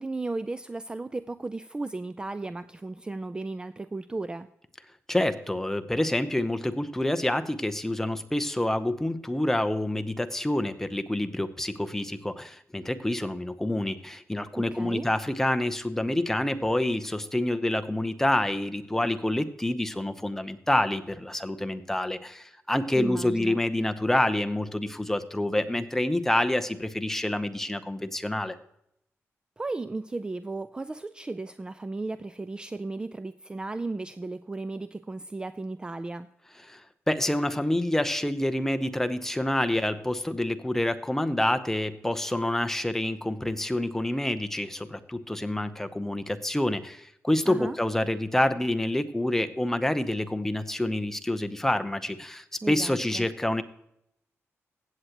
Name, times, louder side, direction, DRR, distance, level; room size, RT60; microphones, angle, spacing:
voice 1, 0.0-4.5 14.6-15.1 22.9-23.6 29.6-36.3 47.5-47.8 52.6-53.3, right 2 dB, 15° right, 12 dB, 0.3 m, -35 dB
voice 2, 5.1-28.6 36.7-36.8 37.1-53.6, left 1 dB, 5° left, 10 dB, 0.7 m, -27 dB
15.5 x 7.9 x 2.9 m, 0.76 s
wide cardioid pair, 125°, 5 cm